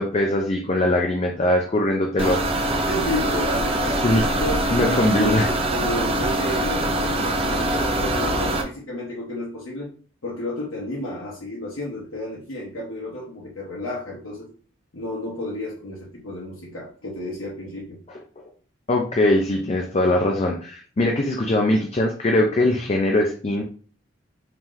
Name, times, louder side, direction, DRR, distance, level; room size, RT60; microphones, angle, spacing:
voice 1, 0.0-2.5 4.0-4.3 4.7-5.5 18.9-23.6, left 1 dB, 30° left, 2 dB, 0.4 m, -21 dB
sound 1, 2.2-8.6, right 1 dB, 30° right, 0.5 m, -23 dB
voice 2, 2.9-9.9 10.2-14.5 14.9-18.0, left 1 dB, 90° left, -5 dB, 0.9 m, -31 dB
3.7 x 2.9 x 3.1 m, 0.42 s
head